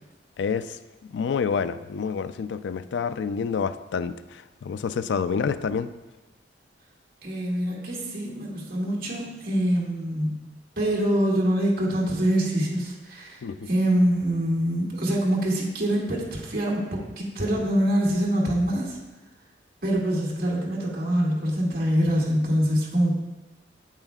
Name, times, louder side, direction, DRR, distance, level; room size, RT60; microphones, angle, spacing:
voice 1, 0.4-0.8 1.1-5.9 13.4-13.7, left 6 dB, 75° left, 13 dB, 0.3 m, -28 dB
voice 2, 7.2-10.4 10.8-13.4 13.7-16.8 17.2-19.0 19.8-23.1, equal, 55° right, -4 dB, 2.0 m, -24 dB
8.9 x 8.1 x 2.3 m, 1.1 s
head